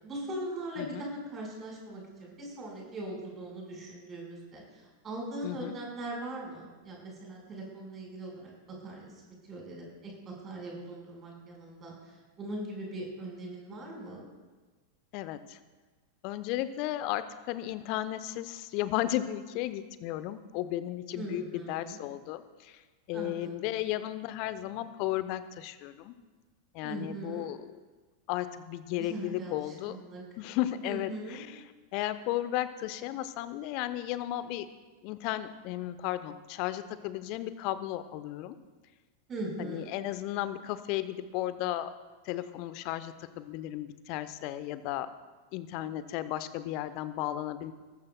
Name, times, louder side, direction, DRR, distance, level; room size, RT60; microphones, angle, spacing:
voice 1, 0.0-4.6 5.0-8.5 8.8-11.9 12.4-14.3 21.1-22.0 23.1-23.9 26.8-27.5 29.0-29.6 29.9-30.2 30.8-31.4 39.3-39.9, right 1 dB, 25° right, -1 dB, 4.7 m, -40 dB
voice 2, 0.8-1.1 5.4-5.7 15.1-15.6 16.2-22.8 23.1-26.1 26.7-27.6 28.3-30.0 30.4-31.6 31.9-34.7 35.0-38.6 39.6-41.9 42.2-45.1 45.5-47.7, left 14 dB, 45° left, 13 dB, 0.7 m, -34 dB
19.0 x 14.0 x 2.2 m, 1.3 s
figure-of-eight pair, 90°, 0 cm